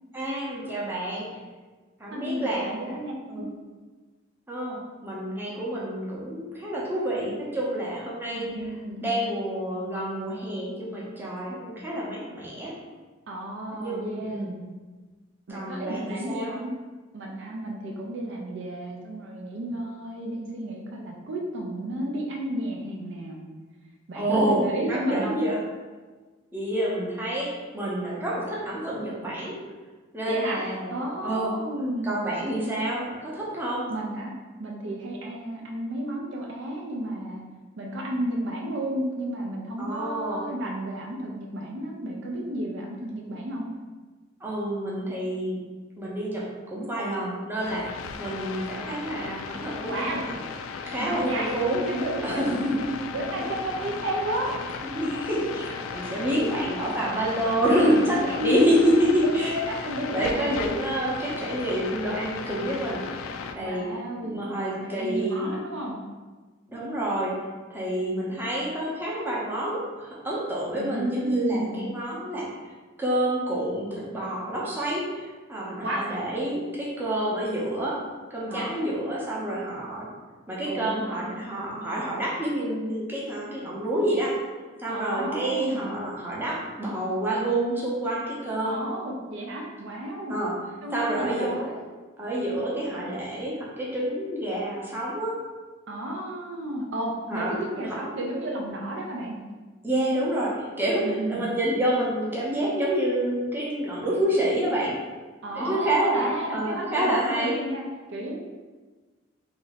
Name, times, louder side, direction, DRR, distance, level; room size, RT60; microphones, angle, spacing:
voice 1, 0.1-1.3 2.0-3.0 3.3-3.5 4.5-8.7 9.0-12.7 13.7-14.6 15.5-16.5 24.1-25.6 26.5-29.6 30.1-31.0 31.2-31.6 32.0-33.9 39.8-40.5 44.4-45.6 46.0-50.4 50.9-51.8 52.2-53.0 54.8-59.8 60.1-63.9 64.2-65.6 66.7-67.4 67.7-72.5 73.0-78.0 78.3-80.1 80.5-84.4 84.8-88.8 90.3-90.5 90.9-91.7 92.2-95.4 97.3-97.6 97.8-98.0 99.8-105.0 105.5-107.6, right 1 dB, 10° right, -5 dB, 0.7 m, -28 dB
voice 2, 2.1-3.5 8.4-9.1 13.3-14.5 15.5-16.7 17.1-23.5 24.1-25.3 30.3-30.6 30.9-32.1 33.9-34.3 34.6-37.4 37.8-43.6 49.8-50.2 51.0-51.5 51.9-52.6 53.1-54.8 55.9-56.1 58.4-58.5 59.2-60.6 63.6-66.0 70.8-71.9 75.8-76.1 78.5-78.7 80.7-81.4 84.9-86.0 88.6-90.3 90.8-91.8 95.9-99.4 101.0-101.5 105.4-107.8 108.1-108.4, right 1 dB, 65° right, 0 dB, 0.5 m, -32 dB
sound 1, 47.6-63.6, left 5 dB, 90° left, 0.3 m, -36 dB
2.9 x 2.6 x 4.0 m, 1.3 s
head